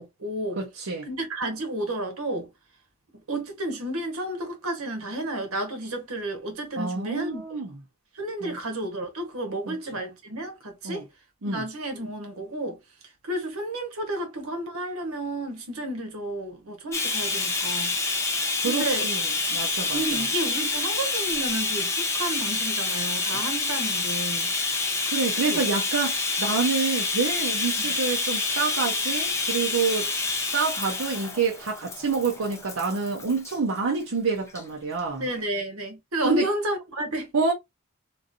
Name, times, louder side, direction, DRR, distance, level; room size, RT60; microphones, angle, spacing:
voice 1, 0.0-0.6 1.0-2.5 3.3-7.6 8.1-11.1 11.4-12.8 13.2-18.0 18.6-19.1 19.9-24.5 25.4-25.6 27.8-27.9 35.2-37.3, right 1 dB, 85° right, 1.2 m, -31 dB
voice 2, 0.6-1.1 6.8-7.7 8.4-8.6 9.7-9.8 10.8-11.0 11.4-11.6 18.6-19.2 19.5-20.2 25.1-30.1 30.4-35.3 36.2-36.5 37.3-37.5, right 4 dB, 65° right, 0.7 m, -27 dB
Bathtub (filling or washing), 16.9-33.6 34.5-34.6 35.0-35.1, left 3 dB, 15° left, 0.6 m, -27 dB
3.1 x 2.5 x 2.5 m
head